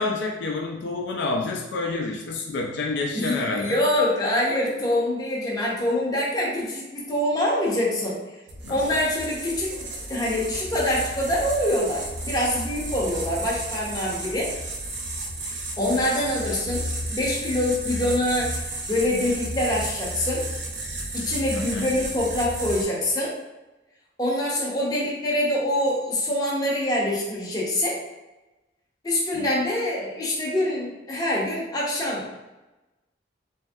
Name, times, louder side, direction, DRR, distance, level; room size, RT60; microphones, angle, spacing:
voice 1, 0.0-3.8 8.6-8.8 21.5-21.9 29.3-29.5, left 3 dB, 70° left, 0 dB, 0.4 m, -28 dB
voice 2, 3.1-8.2 8.7-9.8 10.1-14.5 15.8-18.5 18.9-20.4 21.1-23.3 24.2-28.0 29.0-32.3, left 1 dB, 20° left, -4 dB, 0.7 m, -25 dB
sound 1, 8.5-22.8, right 1 dB, 85° right, 0.6 m, -33 dB
3.0 x 2.6 x 2.3 m, 1.0 s
head